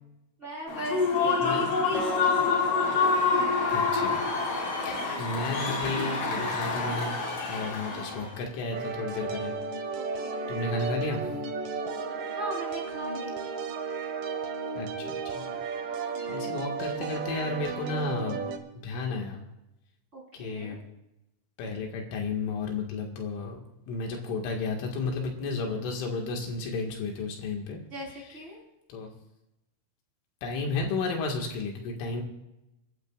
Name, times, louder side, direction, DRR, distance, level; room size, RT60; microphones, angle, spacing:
voice 1, 0.4-2.6 4.7-5.0 7.9-8.2 10.2-10.6 12.3-13.7 16.1-16.7 18.9-19.2 20.1-20.8 27.9-28.6, equal, 15° right, -4 dB, 3.6 m, -39 dB
Human voice / Cheering / Applause, 0.7-8.3, left 4 dB, 55° left, 5.2 m, -27 dB
voice 2, 1.4-1.7 3.7-4.2 4.9-7.2 7.5-9.5 10.5-11.2 14.8-15.5 16.3-18.5 18.8-19.4 20.3-20.8 21.6-23.6 23.9-27.8 28.2-28.4 28.9-29.1 30.4-32.2, left 3 dB, 80° left, 1 dB, 4.4 m, -33 dB
Acoustic guitar, 1.9-5.2, left 2 dB, 25° left, 0.6 m, -39 dB
sound 1, 8.7-18.6, right 5 dB, 65° right, 2.2 m, -34 dB
29.5 x 12.0 x 2.5 m, 0.92 s
omnidirectional pair, 5.7 m